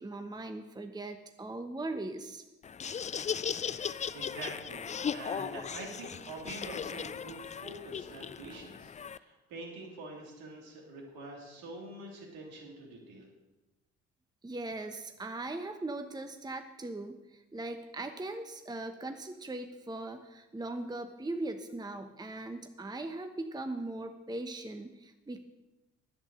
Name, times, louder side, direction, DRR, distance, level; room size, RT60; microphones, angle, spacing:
voice 1, 0.0-2.4 14.4-25.4, right 2 dB, 10° right, 8 dB, 1.0 m, -39 dB
Laughter, 2.6-9.2, left 7 dB, 20° left, 0.4 m, -37 dB
voice 2, 3.7-13.3, right 2 dB, 65° right, -1 dB, 3.3 m, -46 dB
11.5 x 8.4 x 6.6 m, 1.1 s
figure-of-eight pair, 45°, 38 cm